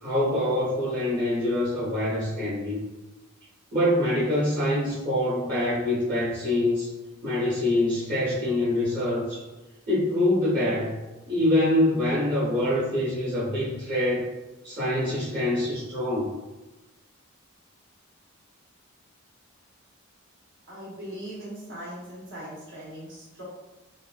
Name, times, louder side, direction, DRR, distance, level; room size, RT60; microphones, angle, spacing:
voice 1, 0.0-2.8 3.7-6.9 7.2-9.4 9.9-11.0 11.3-14.3 14.6-16.3, left 1 dB, 40° right, -8 dB, 1.1 m, -25 dB
voice 2, 20.7-23.4, right 1 dB, 60° right, -6 dB, 1.1 m, -40 dB
3.4 x 2.3 x 2.4 m, 1.1 s
head